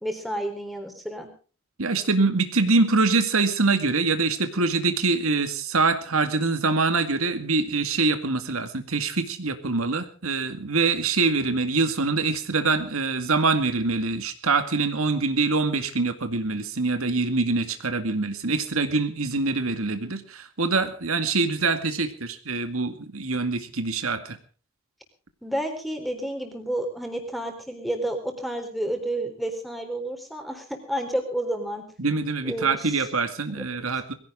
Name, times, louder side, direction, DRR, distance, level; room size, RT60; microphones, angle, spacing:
voice 1, 0.0-1.3 25.4-31.8 32.4-33.0, right 1 dB, ahead, 4 dB, 3.9 m, -30 dB
voice 2, 1.8-24.4 32.0-34.1, right 3 dB, 80° right, 8 dB, 2.1 m, -24 dB
22.0 x 16.5 x 3.8 m, 0.38 s
head